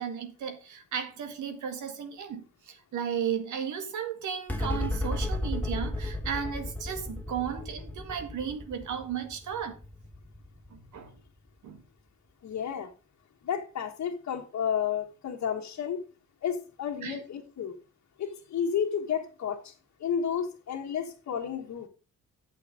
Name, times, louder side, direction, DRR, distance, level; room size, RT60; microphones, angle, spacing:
voice 1, 0.0-9.8 10.7-11.1 11.6-11.8 17.0-17.2, right 8 dB, 75° right, 1.9 m, -35 dB
sound 1, 4.5-11.2, left 1 dB, 5° left, 1.8 m, -34 dB
voice 2, 12.4-12.9 13.4-16.0 16.4-17.7 18.2-19.7 20.0-21.9, left 8 dB, 65° left, 1.5 m, -31 dB
8.7 x 6.3 x 5.1 m
supercardioid pair, 65°, 30 cm